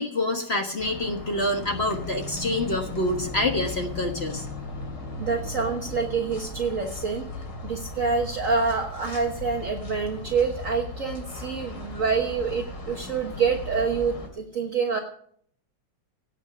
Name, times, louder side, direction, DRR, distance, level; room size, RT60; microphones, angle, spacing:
voice 1, 0.0-4.4, left 1 dB, 35° left, 4 dB, 1.5 m, -27 dB
sound 1, 0.8-14.3, left 2 dB, 70° left, 3.3 m, -37 dB
voice 2, 5.2-15.0, right 5 dB, 45° right, 2 dB, 1.5 m, -27 dB
17.5 x 6.3 x 9.0 m, 0.63 s
omnidirectional pair, 2.0 m